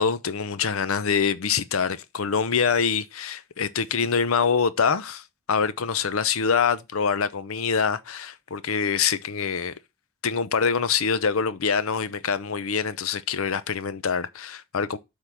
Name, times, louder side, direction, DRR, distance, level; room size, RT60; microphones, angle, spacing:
voice 1, 0.0-9.7 10.2-15.0, left 6 dB, 80° left, 0.6 m, -25 dB
8.1 x 3.8 x 5.9 m
head